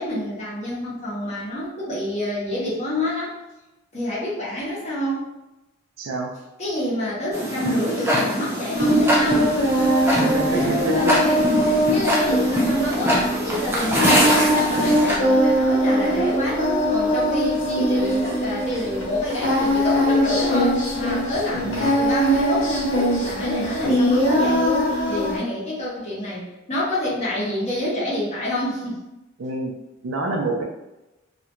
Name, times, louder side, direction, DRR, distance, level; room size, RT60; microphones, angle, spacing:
voice 1, 0.0-3.3 3.9-5.3 6.6-9.5 10.0-10.7 10.9-24.6 25.1-29.0, equal, 35° left, -8 dB, 0.8 m, -28 dB
voice 2, 6.0-6.3 10.2-11.0 21.6-22.0 29.4-29.7 30.0-30.6, right 3 dB, 75° right, 0 dB, 0.4 m, -27 dB
Tick-tock, 7.3-15.2, equal, 10° right, 0.4 m, -23 dB
Singing, 8.7-25.4, equal, 85° left, 0.9 m, -21 dB
2.4 x 2.1 x 2.9 m, 0.96 s
head